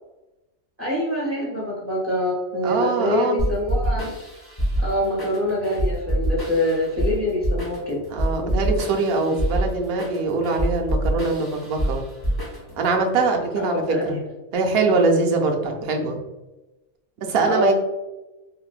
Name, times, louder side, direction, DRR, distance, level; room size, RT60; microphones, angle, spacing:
voice 1, 0.8-4.1 4.8-8.0 13.6-14.2 17.4-17.7, left 1 dB, 20° right, -6 dB, 0.4 m, -24 dB
voice 2, 2.6-3.5 8.1-12.0 12.8-14.2 14.5-16.2 17.2-17.7, right 3 dB, 60° right, 2 dB, 0.6 m, -23 dB
sound 1, 3.4-12.9, right 1 dB, 25° left, 0.6 m, -26 dB
3.8 x 2.1 x 2.4 m, 1.1 s
omnidirectional pair, 1.3 m